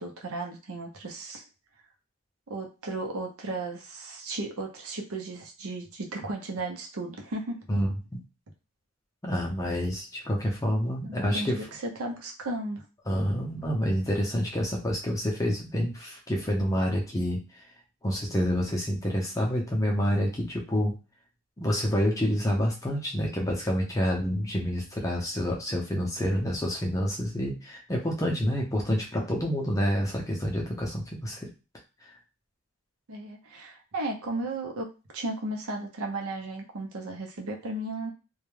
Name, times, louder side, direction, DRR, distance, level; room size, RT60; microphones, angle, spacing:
voice 1, 0.0-1.5 2.5-7.6 11.0-12.9 33.1-38.1, right 2 dB, 75° right, 2 dB, 0.6 m, -35 dB
voice 2, 7.7-8.2 9.2-11.6 13.1-17.4 18.0-20.9 21.6-31.5, equal, 15° left, -1 dB, 0.5 m, -28 dB
2.2 x 2.1 x 3.1 m, 0.31 s
head